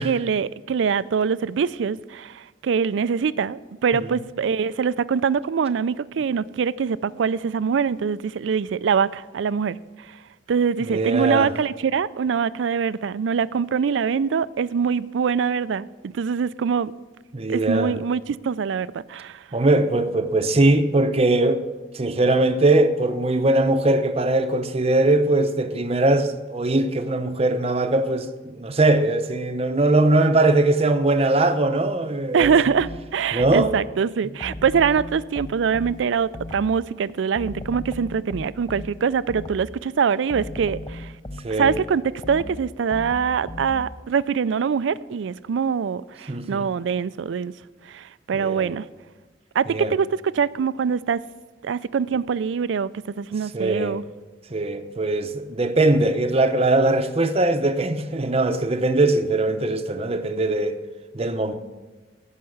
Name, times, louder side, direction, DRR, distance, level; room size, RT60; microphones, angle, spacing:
voice 1, 0.0-9.8 10.5-16.9 17.5-19.4 32.3-41.1 41.6-42.0 42.3-47.5 47.9-48.9 49.5-51.2 51.6-52.9 53.2-54.0, right 6 dB, 80° right, 0.4 m, -23 dB
voice 2, 10.9-11.5 17.3-18.0 19.5-21.6 21.9-32.5 33.3-33.8 41.4-41.8 46.3-46.7 48.3-48.7 49.7-49.9 53.5-54.0 54.5-60.8 61.1-61.5, right 2 dB, 35° right, 0.7 m, -21 dB
sound 1, 32.4-33.9 34.4-36.9 37.4-39.8 40.3-44.1, left 1 dB, 25° left, 0.5 m, -37 dB
15.5 x 5.7 x 6.4 m
head